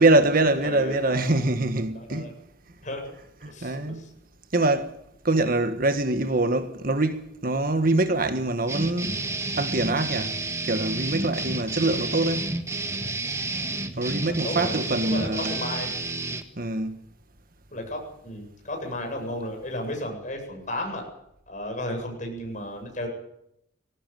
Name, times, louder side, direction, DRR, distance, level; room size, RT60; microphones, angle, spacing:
voice 1, 0.0-2.4 3.4-4.1 4.5-5.0 5.2-9.2 9.5-10.4 10.6-12.6 13.9-15.6 16.5-17.0, right 2 dB, 50° right, 1.5 m, -24 dB
voice 2, 0.6-1.4 1.9-2.3 2.8-3.1 3.5-4.1 11.8-12.0 14.2-15.9 17.7-21.1 21.5-23.1, left 1 dB, 40° left, 8.0 m, -34 dB
sound 1, 8.7-16.4, right 2 dB, 15° right, 1.8 m, -30 dB
21.0 x 17.5 x 9.2 m
head